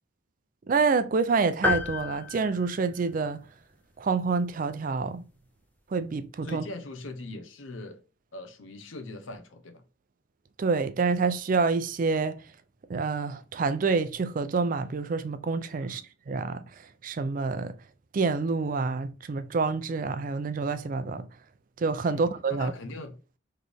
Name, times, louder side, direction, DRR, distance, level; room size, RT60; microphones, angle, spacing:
voice 1, 0.7-3.4 4.0-5.2 5.9-6.6 10.6-12.4 12.9-16.0 16.3-16.6 17.0-17.7 18.1-21.3 21.8-22.7, right 4 dB, 45° right, 0.4 m, -27 dB
sound 1, 1.6-3.4, left 4 dB, 10° left, 0.6 m, -31 dB
voice 2, 6.4-8.0 8.3-9.8 15.8-16.1 22.1-23.2, left 2 dB, 80° left, 0.7 m, -41 dB
4.1 x 3.2 x 3.4 m
head